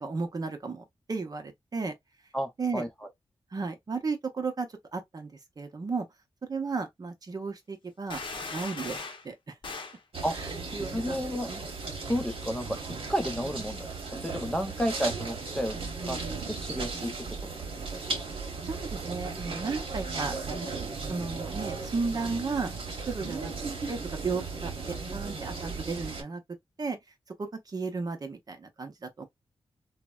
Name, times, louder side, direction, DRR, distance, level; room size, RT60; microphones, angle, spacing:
voice 1, 0.0-1.9 2.6-2.8 3.5-6.1 6.5-8.2 8.5-9.6 10.3-11.6 18.6-22.7 23.0-23.5 23.9-26.4 26.8-27.0 27.4-29.2, right 4 dB, 40° right, 0.7 m, -34 dB
voice 2, 2.3-2.9 10.2-10.4 10.9-11.5 12.1-12.8 13.1-13.9 14.2-15.8 16.0-16.2 16.5-17.1 17.5-17.7, equal, 5° left, 0.5 m, -31 dB
sound 1, 8.1-9.3 9.6-10.0, left 4 dB, 50° left, 0.7 m, -38 dB
sound 2, 10.1-26.2, right 4 dB, 60° right, 1.0 m, -36 dB
3.2 x 2.1 x 2.3 m
wide cardioid pair, 115°, 10 cm